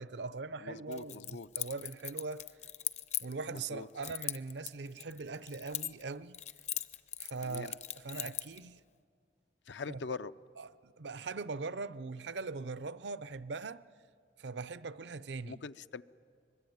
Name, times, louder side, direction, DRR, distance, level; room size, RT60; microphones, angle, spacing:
voice 1, 0.0-2.5 3.2-6.4 7.2-8.8 9.9-10.0 10.6-13.8 14.4-15.6, right 4 dB, 75° right, 0.6 m, -41 dB
voice 2, 0.6-1.5 3.5-3.9 7.4-7.8 9.7-10.3 15.4-16.0, left 4 dB, 85° left, 0.6 m, -43 dB
Keys jangling, 0.9-3.6 4.0-6.1 6.3-8.6, left 11 dB, 40° left, 0.6 m, -39 dB
24.5 x 21.5 x 9.4 m
head